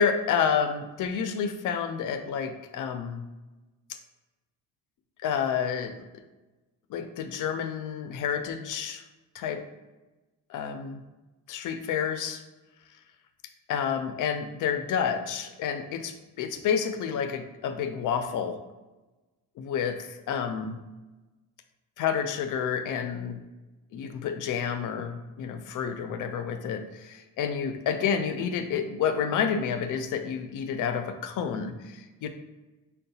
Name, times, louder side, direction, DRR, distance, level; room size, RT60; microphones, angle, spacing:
voice 1, 0.0-3.2 5.2-5.9 6.9-9.0 9.3-9.6 10.5-11.0 11.5-12.4 13.7-18.6 19.6-20.8 22.0-23.4 23.9-32.3, left 7 dB, 60° left, 7 dB, 0.4 m, -29 dB
5.4 x 2.2 x 2.7 m, 1.1 s
cardioid pair, 155°, 35 cm